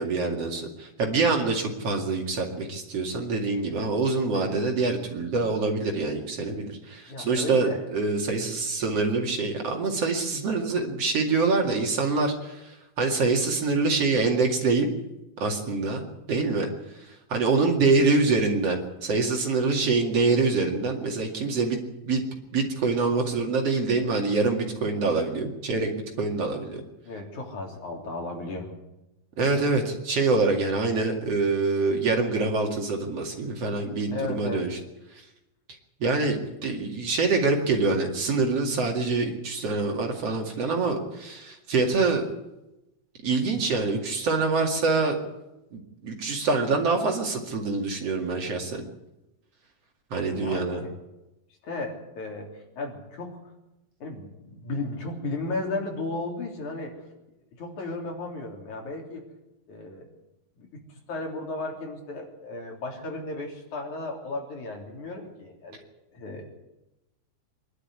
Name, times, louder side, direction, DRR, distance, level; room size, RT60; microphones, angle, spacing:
voice 1, 0.0-14.9 15.4-16.7 17.1-21.8 22.1-22.2 22.5-25.9 26.2-26.8 29.4-34.8 36.0-42.3 43.2-45.2 45.7-48.8 50.1-50.8, right 3 dB, 50° right, 1 dB, 3.2 m, -25 dB
voice 2, 7.1-7.8 17.4-17.7 27.0-28.7 34.1-34.7 50.3-50.9 51.6-53.4 54.0-57.1 57.6-59.3 59.7-60.1 60.6-60.7 61.1-65.9 66.1-66.4, left 2 dB, 65° left, 0 dB, 4.8 m, -35 dB
23.5 x 11.5 x 9.6 m, 0.96 s
omnidirectional pair, 3.6 m